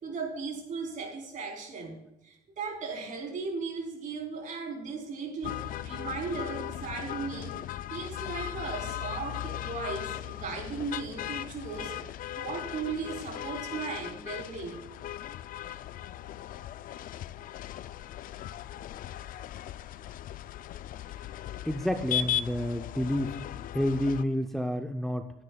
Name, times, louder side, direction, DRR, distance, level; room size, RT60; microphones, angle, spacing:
voice 1, 0.0-7.6 7.9-11.9 12.3-14.8, right 4 dB, 50° right, 1 dB, 3.7 m, -37 dB
sound 1, 5.4-24.2, left 12 dB, 55° left, 0.4 m, -38 dB
voice 2, 21.6-23.4 23.7-25.3, left 1 dB, ahead, 5 dB, 0.6 m, -29 dB
16.0 x 9.9 x 2.3 m, 0.87 s
cardioid pair, 110°, 17 cm